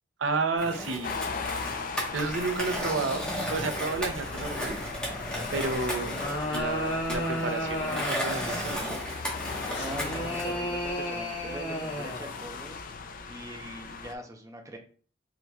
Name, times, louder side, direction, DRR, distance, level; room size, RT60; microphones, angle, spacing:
voice 1, 0.2-1.2 2.1-3.2 3.5-4.8 5.5-6.1 6.5-9.2, right 3 dB, 85° right, 7 dB, 0.6 m, -31 dB
Skateboard, 0.6-10.6, equal, 5° left, 1.1 m, -35 dB
sound 1, 1.0-14.1, left 4 dB, 45° left, 0.4 m, -38 dB
sound 2, 5.9-8.7 9.7-12.3, equal, 75° left, 1.8 m, -33 dB
voice 2, 9.5-12.8 13.3-14.8, right 1 dB, 15° right, 3 dB, 0.6 m, -42 dB
4.6 x 4.0 x 2.3 m, 0.42 s
head